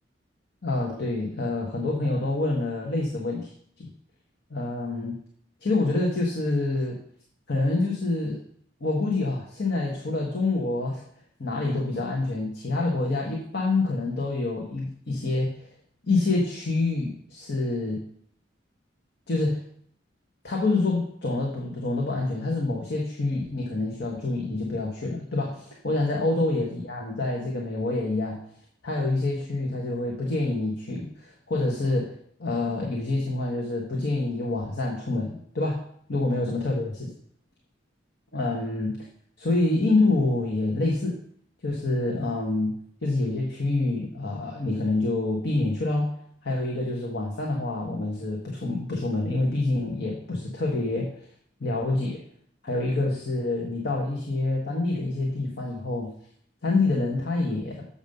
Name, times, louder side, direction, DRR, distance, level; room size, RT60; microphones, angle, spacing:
voice 1, 0.6-3.5 3.8-3.9 4.5-5.2 5.6-7.0 7.5-8.4 8.8-11.0 11.4-15.7 16.0-18.0 19.3-19.6 20.4-28.4 28.8-32.1 32.4-35.8 36.1-36.9 38.3-39.0 39.4-41.2 41.6-42.8 43.0-46.1 46.4-51.3 51.6-52.2 52.6-56.1 56.6-57.9, left 2 dB, 60° left, -1 dB, 1.3 m, -27 dB
7.1 x 5.3 x 6.7 m, 0.64 s
head